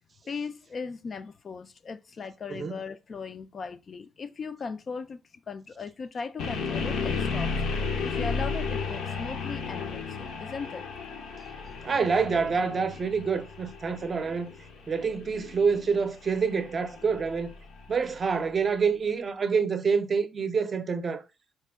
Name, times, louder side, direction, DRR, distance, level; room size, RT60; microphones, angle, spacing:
voice 1, 0.3-5.2 5.5-7.5 8.0-10.8 11.7-11.9, left 5 dB, 45° left, 0.3 m, -38 dB
sound 1, 6.4-18.3, left 4 dB, 80° left, 0.6 m, -34 dB
voice 2, 11.8-14.5 14.9-17.5 17.9-21.2, right 5 dB, 40° right, 0.5 m, -27 dB
4.1 x 2.2 x 3.5 m
cardioid pair, 90°, 0 cm